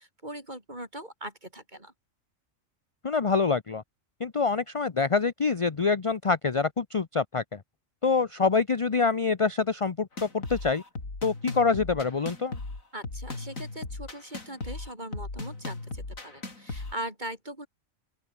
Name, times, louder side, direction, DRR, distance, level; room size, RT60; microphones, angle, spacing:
voice 1, 0.0-1.9 12.9-17.7, right 1 dB, 35° right, 7.3 m, -40 dB
voice 2, 3.0-3.8 4.2-7.6 8.0-10.8 11.2-12.6, left 4 dB, 30° left, 0.7 m, -26 dB
sound 1, 10.2-16.9, left 3 dB, 85° left, 4.4 m, -38 dB
open air
omnidirectional pair, 1.4 m